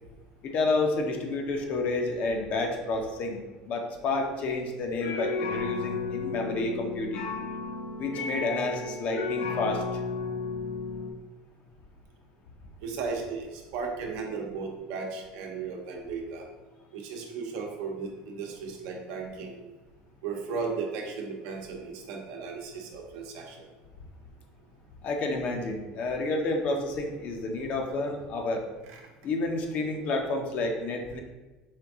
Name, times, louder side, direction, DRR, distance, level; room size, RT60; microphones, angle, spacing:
voice 1, 0.4-7.3 8.0-9.8 25.0-28.6 29.2-31.2, left 2 dB, 50° left, 3 dB, 0.7 m, -30 dB
sound 1, 4.8-11.1, left 4 dB, 85° left, 0.5 m, -33 dB
voice 2, 12.8-16.4 16.9-19.6 20.2-23.7 28.9-29.0, right 5 dB, 75° right, 1 dB, 0.8 m, -35 dB
4.5 x 2.6 x 3.5 m, 1.2 s
supercardioid pair, 125°, 3 cm